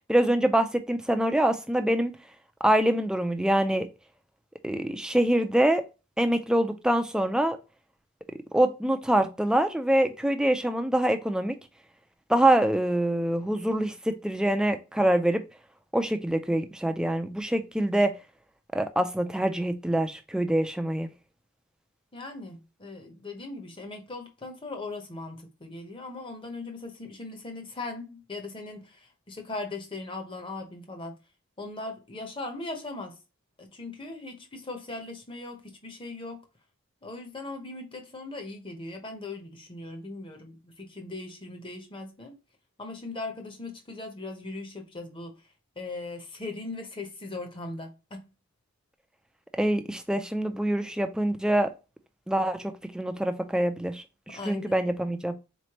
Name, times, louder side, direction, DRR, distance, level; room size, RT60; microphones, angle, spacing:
voice 1, 0.1-2.1 2.6-3.9 4.6-5.8 6.2-7.6 8.5-11.6 12.3-15.4 15.9-18.1 18.7-21.1 49.6-51.7 52.3-55.3, right 1 dB, 5° right, 0.3 m, -25 dB
voice 2, 22.1-31.2 31.6-33.2 33.6-36.5 37.0-42.3 42.8-45.4 45.8-48.3 54.3-54.8, left 2 dB, 25° left, 0.8 m, -39 dB
4.1 x 3.1 x 2.9 m
head